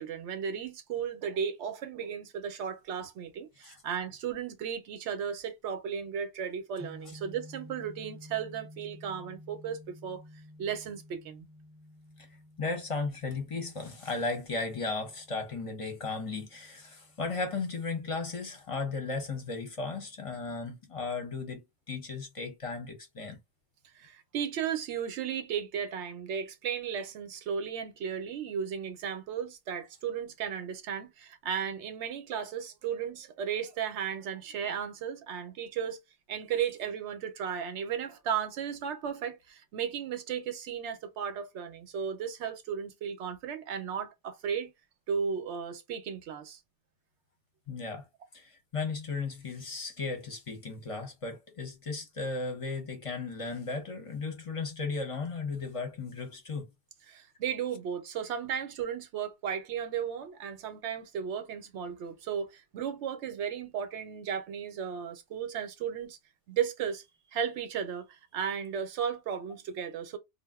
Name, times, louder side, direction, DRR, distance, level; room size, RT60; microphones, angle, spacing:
voice 1, 0.0-10.2 10.6-11.5 23.9-36.0 36.3-44.7 45.1-46.6 57.1-66.2 66.5-70.2, right 7 dB, 80° right, 0.9 m, -35 dB
sound 1, 6.8-18.9, left 1 dB, 20° right, 0.3 m, -52 dB
voice 2, 12.6-23.4 47.7-48.0 48.3-56.7, left 3 dB, 35° left, 0.7 m, -35 dB
2.5 x 2.0 x 3.4 m
omnidirectional pair, 1.2 m